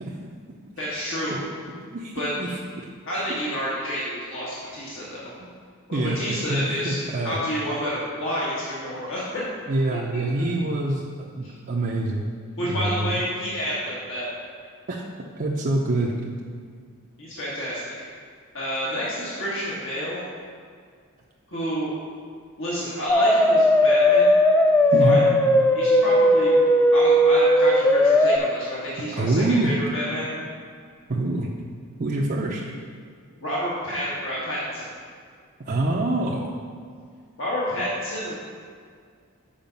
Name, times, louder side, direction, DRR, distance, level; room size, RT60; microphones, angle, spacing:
voice 1, 0.8-1.4 2.1-2.3 3.0-5.3 5.9-9.4 11.4-11.5 12.6-14.3 17.2-17.9 18.5-20.2 21.5-21.9 22.6-24.3 25.0-25.3 25.7-26.6 26.9-30.3 33.3-34.9 37.4-38.3, equal, 60° left, -7 dB, 1.6 m, -29 dB
voice 2, 1.9-2.9 5.4-5.5 5.9-6.2 6.5-7.4 9.7-11.0 11.3-12.3 12.6-13.1 14.9-15.0 15.4-16.2 24.9-25.2 29.1-29.7 31.1-31.5 32.0-32.6 35.6-36.5, right 2 dB, 40° right, -4 dB, 0.6 m, -25 dB
sound 1, 23.1-28.4, left 1 dB, 10° left, 0.3 m, -17 dB
7.2 x 5.0 x 5.3 m, 2.1 s
head